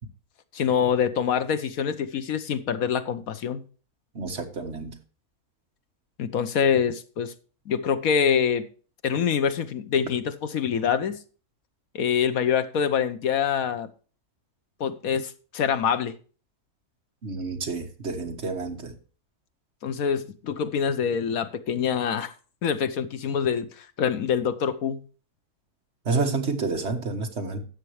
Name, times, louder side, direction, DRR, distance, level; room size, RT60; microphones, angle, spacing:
voice 1, 0.5-3.6 6.2-7.3 7.7-8.7 9.0-11.2 11.9-13.9 14.8-16.1 19.8-22.3 22.6-25.0, left 7 dB, 70° left, 1.3 m, -25 dB
voice 2, 4.1-4.9 17.2-18.9 26.0-27.6, right 4 dB, 50° right, 1.7 m, -29 dB
12.5 x 8.3 x 3.2 m
omnidirectional pair, 1.5 m